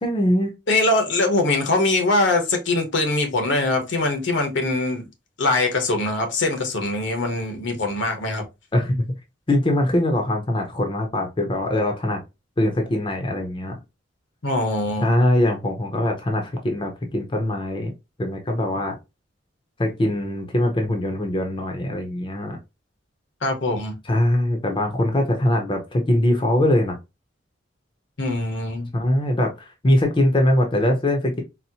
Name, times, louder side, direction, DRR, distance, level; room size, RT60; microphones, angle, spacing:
voice 1, 0.0-0.5 8.7-9.0 9.5-12.2 12.6-13.7 15.0-17.9 18.2-18.9 19.8-22.6 24.1-27.0 28.9-31.4, left 1 dB, 25° left, 0.6 m, -22 dB
voice 2, 0.7-5.0 5.4-8.4 14.4-15.1 23.4-24.0 28.2-28.9, left 2 dB, 70° left, 0.9 m, -22 dB
4.1 x 2.0 x 2.7 m
head